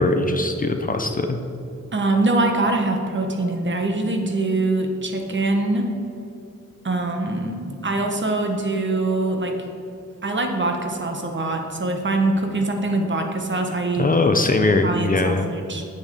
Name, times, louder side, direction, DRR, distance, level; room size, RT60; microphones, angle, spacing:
voice 1, 0.0-1.4 14.0-15.5, left 2 dB, 30° left, 6 dB, 0.6 m, -20 dB
voice 2, 1.9-5.9 6.8-9.6 10.2-14.1 14.8-15.8, right 2 dB, 40° right, 3 dB, 1.3 m, -23 dB
10.5 x 7.4 x 5.4 m, 2.8 s
wide cardioid pair, 130°, 29 cm